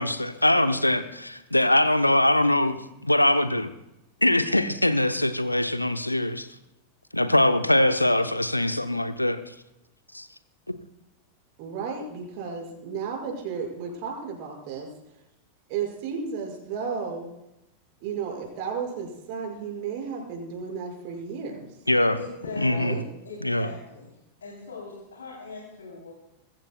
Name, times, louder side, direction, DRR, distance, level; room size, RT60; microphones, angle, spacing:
voice 1, 0.0-3.7 4.2-6.5 7.1-9.5 10.1-10.3 10.7-10.8 21.9-22.2 22.6-22.9 23.4-23.7, left 1 dB, 85° left, 11 dB, 0.8 m, -22 dB
voice 2, 11.6-14.9 15.7-17.3 18.0-21.8 22.7-23.0, right 6 dB, 45° right, 0 dB, 5.9 m, -33 dB
voice 3, 22.2-24.1 24.4-26.1, left 4 dB, 70° left, -3 dB, 3.4 m, -40 dB
22.0 x 15.0 x 2.3 m, 0.91 s
figure-of-eight pair, 90°, 0 cm